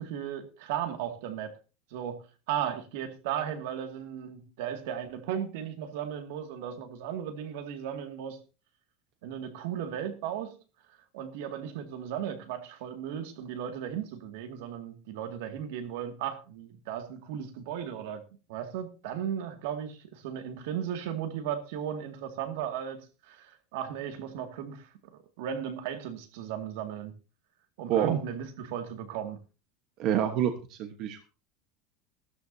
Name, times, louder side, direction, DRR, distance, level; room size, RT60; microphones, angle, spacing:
voice 1, 0.0-1.6 1.9-8.4 9.2-10.6 11.1-24.9 25.4-27.1 27.8-29.4, right 9 dB, 75° right, 2.2 m, -36 dB
voice 2, 27.9-28.2 30.0-31.3, right 10 dB, 45° right, 1.2 m, -27 dB
15.0 x 13.0 x 2.7 m
cardioid pair, 170°, 0 cm